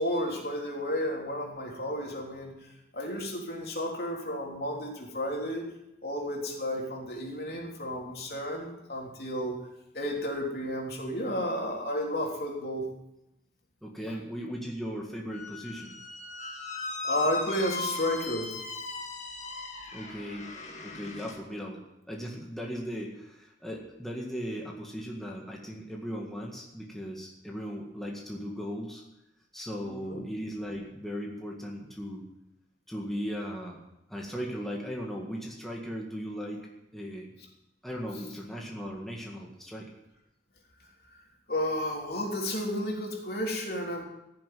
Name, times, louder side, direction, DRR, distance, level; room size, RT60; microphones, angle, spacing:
voice 1, 0.0-2.5 2.9-5.6 6.0-9.6 9.9-12.9 17.0-18.5 29.8-30.2 41.5-44.0, left 1 dB, 60° left, -1 dB, 3.4 m, -32 dB
voice 2, 13.8-16.0 19.9-20.5 20.8-29.0 29.5-32.3 32.9-33.8 34.1-36.6 36.9-37.3 37.8-39.9, equal, ahead, -2 dB, 1.9 m, -37 dB
Squeak, 15.3-21.4, left 3 dB, 40° left, 2.1 m, -38 dB
15.5 x 7.5 x 9.4 m, 0.89 s
head